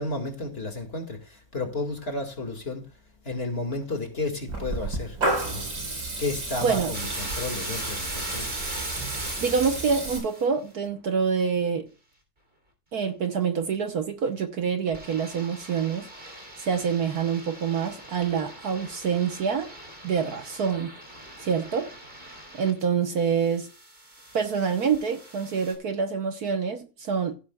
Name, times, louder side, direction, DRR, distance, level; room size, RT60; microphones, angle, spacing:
voice 1, 0.0-2.8 3.3-5.2 5.4-5.6 6.2-8.5, left 2 dB, 35° left, 2.3 m, -32 dB
Water tap faucet / Liquid, 4.5-10.2, right 2 dB, 85° right, 5.6 m, -31 dB
voice 2, 6.6-6.9 9.4-11.9 12.9-19.7 20.0-20.9 21.4-21.9 22.5-23.7 24.3-27.4, right 6 dB, 60° right, 1.4 m, -26 dB
sound 1, 6.9-10.4 14.9-22.8 23.1-25.7, right 1 dB, 30° right, 3.5 m, -41 dB
16.0 x 10.5 x 2.3 m
omnidirectional pair, 2.0 m